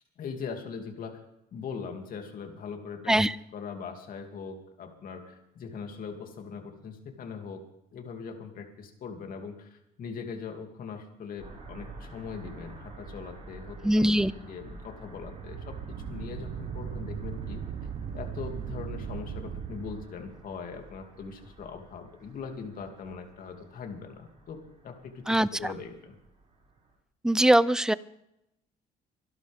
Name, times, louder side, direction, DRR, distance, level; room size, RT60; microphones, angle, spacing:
voice 1, 0.2-1.2 1.5-3.2 3.5-7.6 7.9-14.1 14.4-15.7 16.1-17.6 18.1-26.1, left 5 dB, 55° left, 4 dB, 2.8 m, -41 dB
sound 1, 11.4-27.0, right 3 dB, 35° right, 6.1 m, -49 dB
voice 2, 13.8-14.3 25.3-25.7 27.2-27.9, right 1 dB, 5° right, 17 dB, 0.5 m, -22 dB
sound 2, 15.2-20.0, right 8 dB, 60° right, 1.1 m, -38 dB
25.0 x 11.5 x 3.6 m, 0.83 s
cardioid pair, 110°, 17 cm